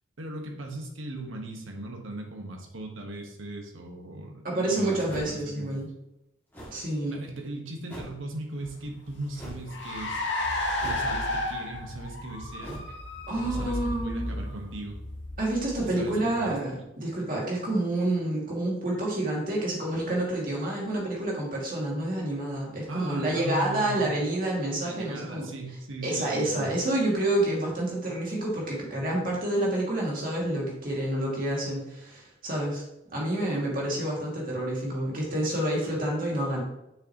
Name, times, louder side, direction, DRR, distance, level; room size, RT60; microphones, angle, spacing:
voice 1, 0.2-5.8 7.1-10.2 10.8-12.8 13.4-15.0 15.8-16.6 22.9-24.2 24.8-26.8 33.5-34.0, right 2 dB, 85° right, 2 dB, 1.3 m, -38 dB
voice 2, 4.4-5.9 6.7-7.2 13.3-14.3 15.4-25.4 26.0-32.8 33.1-36.6, right 1 dB, 45° right, -3 dB, 2.3 m, -28 dB
sound 1, 5.1-5.5 6.5-6.8 7.9-8.2 9.3-9.7 10.8-11.3 12.6-12.9, equal, 10° left, 2.1 m, -42 dB
Car, 8.6-16.4, left 1 dB, 60° left, 1.1 m, -33 dB
7.1 x 6.3 x 3.0 m, 0.87 s
head